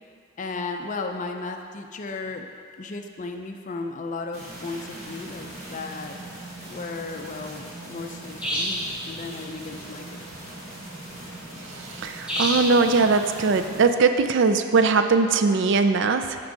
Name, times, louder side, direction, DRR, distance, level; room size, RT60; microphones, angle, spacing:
voice 1, 0.4-2.5 2.8-6.1 6.7-10.2, left 3 dB, 35° left, 4 dB, 0.5 m, -35 dB
sound 1, 4.3-13.8, right 1 dB, 35° right, 1.6 m, -40 dB
sound 2, 8.4-8.9 12.3-12.8, equal, 5° right, 1.2 m, -26 dB
voice 2, 11.9-16.4, right 4 dB, 60° right, 8 dB, 0.4 m, -20 dB
8.8 x 6.0 x 3.8 m, 2.2 s
head